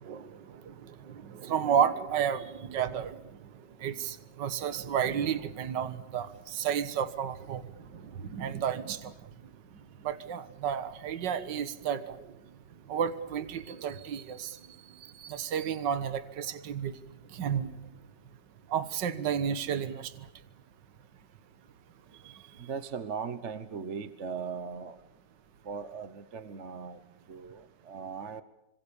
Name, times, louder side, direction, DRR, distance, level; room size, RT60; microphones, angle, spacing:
voice 1, 0.0-3.2 3.8-7.6 7.9-9.1 10.0-12.3 12.9-14.6 15.2-16.9 17.3-17.7 18.7-20.1, right 8 dB, 75° right, 13 dB, 1.9 m, -32 dB
voice 2, 22.6-25.0 25.6-27.0 27.3-28.4, right 6 dB, 45° right, 13 dB, 1.3 m, -38 dB
26.5 x 26.0 x 7.0 m, 0.88 s
omnidirectional pair, 2.0 m